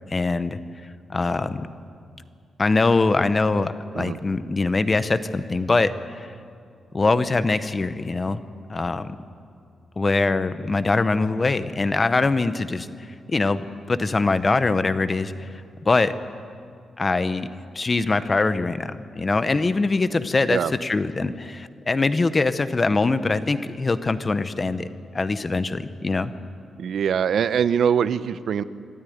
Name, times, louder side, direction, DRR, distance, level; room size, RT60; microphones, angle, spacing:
voice 1, 0.1-0.6 1.1-1.7 2.6-6.3 6.9-8.4 8.7-9.2 10.0-12.9 13.3-13.6 13.9-15.5 15.8-16.1 17.0-17.5 17.7-24.9 25.1-26.3, left 3 dB, 25° left, 13 dB, 0.8 m, -23 dB
voice 2, 26.8-28.6, right 8 dB, 70° right, 15 dB, 0.6 m, -23 dB
25.0 x 12.5 x 9.4 m, 2.3 s
wide cardioid pair, 130°, 0 cm